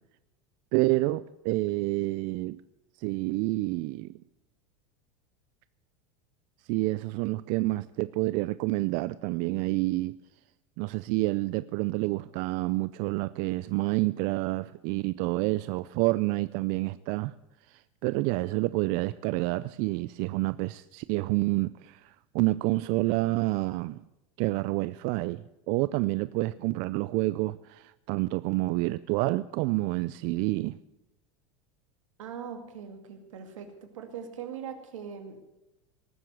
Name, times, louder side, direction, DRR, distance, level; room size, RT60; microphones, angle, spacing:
voice 1, 0.7-2.6 3.0-4.2 6.7-10.2 10.8-17.3 17.7-24.0 24.4-30.7, right 20 dB, 60° right, 0.4 m, -28 dB
voice 2, 32.2-35.4, right 7 dB, 85° right, 2.3 m, -41 dB
19.0 x 7.6 x 7.8 m
hypercardioid pair, 100°, 16 cm